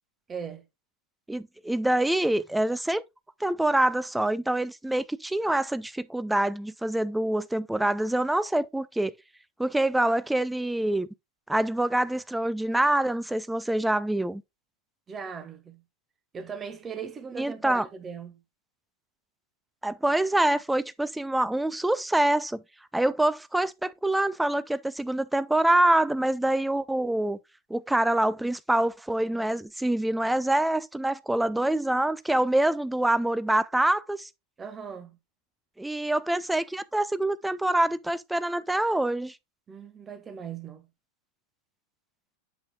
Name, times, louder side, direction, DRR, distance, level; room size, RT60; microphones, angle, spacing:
voice 1, 0.3-0.7 15.1-15.8 16.3-18.4 34.6-35.2 39.7-40.9, right 6 dB, 20° right, 1.5 m, -39 dB
voice 2, 1.3-3.0 3.4-9.1 9.6-11.1 11.5-14.4 17.4-17.8 19.8-22.6 22.9-27.4 27.7-34.3 35.8-39.4, right 1 dB, 5° right, 0.5 m, -25 dB
8.6 x 7.6 x 2.3 m
figure-of-eight pair, 90°, 0 cm